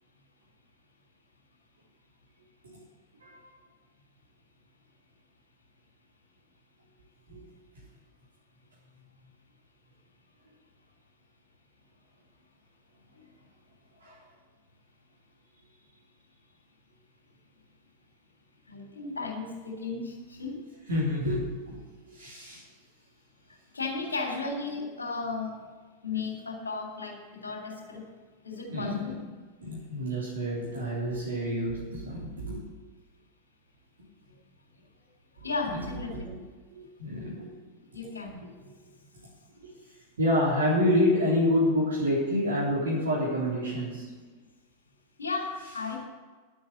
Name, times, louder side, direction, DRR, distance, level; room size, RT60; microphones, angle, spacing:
voice 1, 18.7-20.6 23.7-25.5 26.0-28.0 28.4-29.1 35.4-36.3 37.9-38.4 45.2-46.0, left 4 dB, 75° left, 0 dB, 3.6 m, -34 dB
voice 2, 20.9-22.6 24.7-24.8 28.7-29.2 29.6-32.6 35.7-35.8 36.3-36.4 36.7-37.5 39.6-39.7 40.2-44.1, left 1 dB, 70° right, -5 dB, 3.6 m, -28 dB
11.5 x 8.0 x 8.1 m, 1.4 s
figure-of-eight pair, 90°, 0 cm